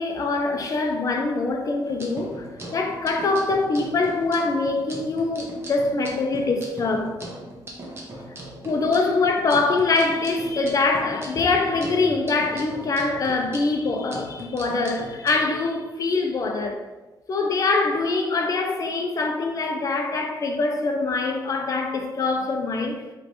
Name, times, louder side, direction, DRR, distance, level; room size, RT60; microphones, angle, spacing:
voice 1, 0.0-2.5 2.7-7.2 8.6-16.8 17.3-23.0, left 3 dB, 45° left, 0.6 m, -24 dB
sound 1, 1.8-15.4, right 1 dB, 30° right, 0.8 m, -40 dB
3.2 x 3.1 x 4.1 m
wide cardioid pair, 140°, 8 cm